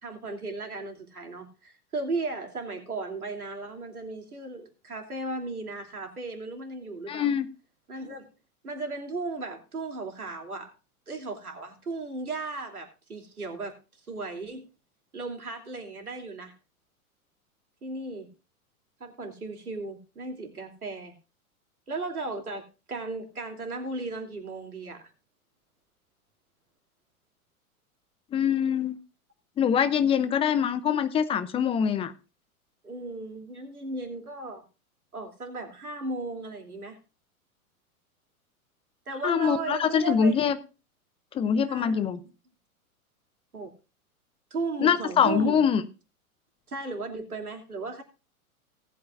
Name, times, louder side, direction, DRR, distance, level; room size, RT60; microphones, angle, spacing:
voice 1, 0.0-7.3 7.9-8.3 8.6-10.7 11.1-13.7 14.1-14.7 15.1-16.5 17.8-18.3 19.0-21.1 21.9-25.0 32.8-34.6 35.1-37.0 39.1-40.4 41.7-42.2 43.5-43.7 44.5-45.6 46.7-48.0, right 3 dB, 80° right, 3 dB, 3.0 m, -36 dB
voice 2, 7.1-7.5 28.3-29.0 29.6-32.1 39.2-40.6 41.3-42.2 44.8-45.8, left 7 dB, 15° left, 13 dB, 0.6 m, -24 dB
18.5 x 8.7 x 2.5 m, 0.32 s
figure-of-eight pair, 105°, 44 cm